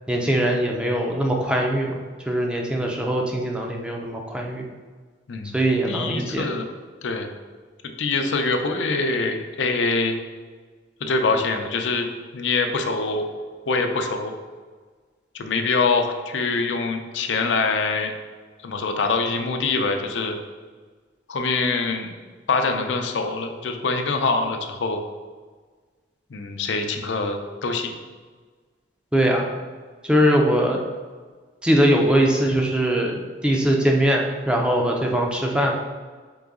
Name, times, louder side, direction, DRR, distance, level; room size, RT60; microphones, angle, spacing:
voice 1, 0.1-2.0 2.3-4.6 5.5-6.4 29.1-29.4 30.0-30.8 31.6-35.8, equal, 5° right, 0 dB, 0.4 m, -21 dB
voice 2, 5.9-6.7 7.0-7.3 7.8-10.2 11.0-12.1 12.3-13.3 13.7-14.3 15.3-18.1 18.6-20.4 21.3-22.1 22.5-25.0 26.3-28.0, left 3 dB, 85° left, 5 dB, 0.5 m, -24 dB
3.9 x 3.8 x 3.5 m, 1.5 s
head